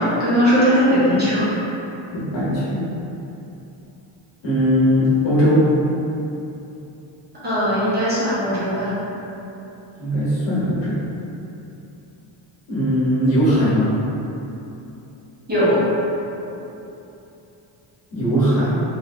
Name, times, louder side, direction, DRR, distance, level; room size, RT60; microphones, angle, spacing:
voice 1, 0.0-1.5 7.4-8.9 15.5-15.8, equal, 20° right, -12 dB, 0.9 m, -18 dB
voice 2, 2.1-2.9 4.4-5.6 10.0-11.0 12.7-13.9 18.1-18.8, equal, 65° left, -10 dB, 1.2 m, -19 dB
3.4 x 2.6 x 2.5 m, 2.9 s
cardioid pair, 160°, 47 cm